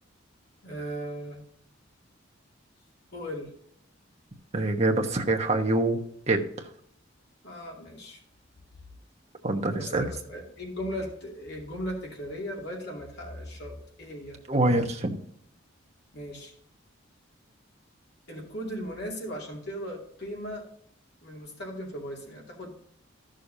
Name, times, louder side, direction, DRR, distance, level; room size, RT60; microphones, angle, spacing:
voice 1, 0.6-1.4 3.1-3.5 7.4-8.2 9.8-14.4 16.1-16.5 18.3-20.7 21.2-22.7, equal, 55° left, -2 dB, 2.6 m, -37 dB
voice 2, 4.5-6.0 6.3-6.7 9.4-10.1 14.5-15.2, right 2 dB, 30° right, 4 dB, 1.1 m, -25 dB
14.0 x 6.6 x 2.7 m, 0.65 s
head